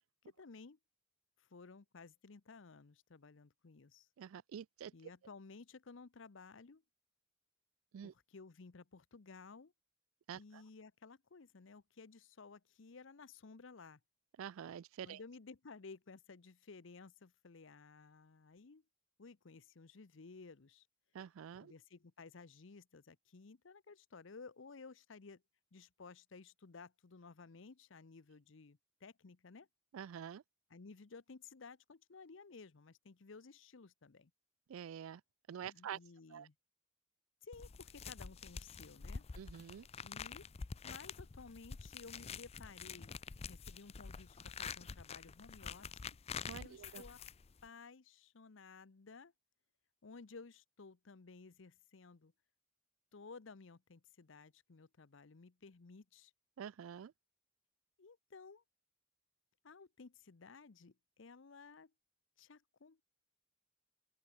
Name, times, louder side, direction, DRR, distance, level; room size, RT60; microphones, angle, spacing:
voice 1, 0.2-0.8 1.4-4.1 4.9-6.8 8.0-9.7 10.3-14.0 15.0-18.8 19.2-20.9 21.6-25.4 25.7-29.7 30.7-34.3 35.6-36.5 37.4-39.3 40.0-40.5 40.8-43.2 43.5-45.9 46.6-47.2 47.6-49.3 50.0-52.3 53.1-56.3 58.0-58.6 59.6-61.9 62.4-63.0, left 4 dB, 65° left, 0.7 m, -56 dB
voice 2, 4.2-4.9 7.9-8.1 10.3-10.6 14.4-15.2 21.1-21.7 29.9-30.4 34.7-35.2 35.5-36.0 36.3-36.5 39.4-39.9 46.4-47.0 56.6-57.1, right 8 dB, 85° right, 0.4 m, -47 dB
sound 1, 37.5-47.7, left 6 dB, 30° left, 0.4 m, -47 dB
open air
head